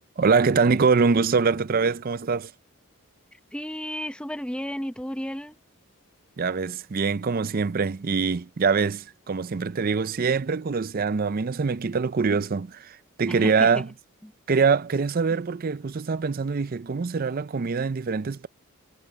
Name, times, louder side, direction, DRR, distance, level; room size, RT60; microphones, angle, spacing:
voice 1, 0.2-2.5 6.4-13.9 14.5-18.5, right 5 dB, 40° right, 0.5 m, -24 dB
voice 2, 3.5-5.6 13.3-13.8 14.2-14.3, equal, 5° left, 0.8 m, -33 dB
head